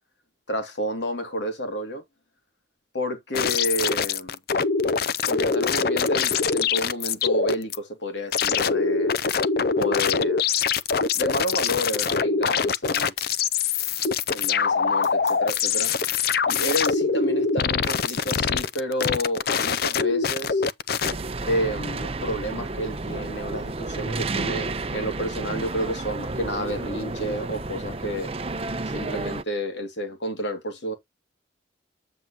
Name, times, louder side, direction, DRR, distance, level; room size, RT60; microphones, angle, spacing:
voice 1, 0.5-2.0 2.9-4.4 5.3-9.2 9.7-10.4 11.1-13.1 14.3-15.9 16.5-20.6 21.5-28.3 28.8-31.0, equal, 75° left, 2.6 m, -30 dB
sound 1, 3.3-7.8 8.3-21.1, left 5 dB, 55° left, 0.5 m, -24 dB
sound 2, 12.9-13.4 13.8-14.2 15.0-15.4 16.6-17.0 17.8-18.3, left 5 dB, 35° left, 2.1 m, -41 dB
sound 3, 21.0-29.4, right 3 dB, 30° right, 0.7 m, -31 dB
8.7 x 7.4 x 2.9 m
head